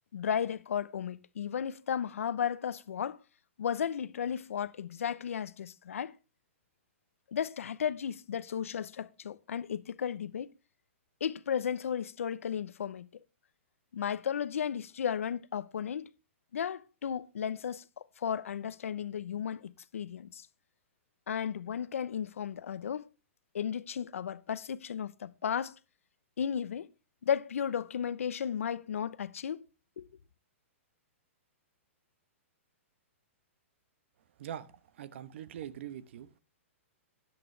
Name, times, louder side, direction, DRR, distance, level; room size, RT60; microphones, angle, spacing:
voice 1, 0.1-3.2 3.6-6.2 7.3-10.5 11.2-13.1 13.9-16.1 16.5-20.5 21.3-23.1 23.5-25.8 26.4-26.9 27.2-29.6 30.0-30.1, left 8 dB, 85° left, 0.8 m, -34 dB
voice 2, 34.4-36.3, right 10 dB, 60° right, 1.1 m, -43 dB
13.0 x 10.5 x 3.3 m
hypercardioid pair, 145°, 7 cm